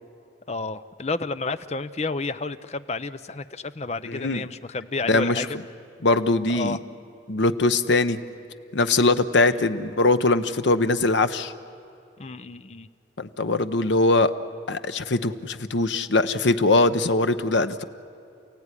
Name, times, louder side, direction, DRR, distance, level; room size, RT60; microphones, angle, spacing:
voice 1, 0.5-5.6 6.5-6.8 9.3-9.6 12.2-12.9, left 3 dB, 35° left, 12 dB, 0.6 m, -31 dB
voice 2, 4.1-4.4 5.1-5.5 6.0-6.8 7.3-8.2 8.7-11.5 13.2-14.3 14.7-17.8, left 2 dB, 75° left, 10 dB, 0.9 m, -21 dB
29.0 x 16.5 x 9.8 m, 2.7 s
head